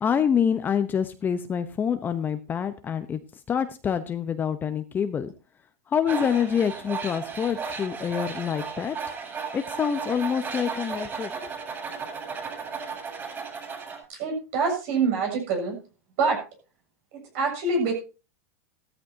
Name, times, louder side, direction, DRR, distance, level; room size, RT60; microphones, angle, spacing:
voice 1, 0.0-3.2 3.5-5.3 5.9-9.0 9.5-11.5, left 7 dB, 25° left, 9 dB, 0.9 m, -26 dB
Tools, 6.1-14.0, right 5 dB, 25° right, 8.0 m, -35 dB
voice 2, 14.1-15.8 16.2-16.4 17.3-17.9, right 4 dB, 60° right, 1 dB, 7.3 m, -25 dB
16.0 x 13.5 x 2.8 m, 0.33 s
supercardioid pair, 125°, 8 cm